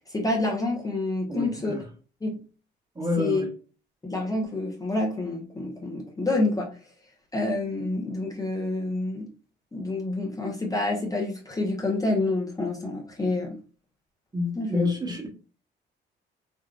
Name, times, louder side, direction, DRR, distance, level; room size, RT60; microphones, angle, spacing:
voice 1, 0.1-1.7 2.2-2.4 3.2-3.4 4.0-6.7 7.3-9.3 9.7-13.6 14.5-14.9, left 2 dB, 15° left, 0.8 m, -28 dB
voice 2, 1.3-1.8 3.0-3.5 14.3-15.3, left 2 dB, 20° right, 1.1 m, -28 dB
3.5 x 2.6 x 2.4 m
cardioid pair, 90°, 20 cm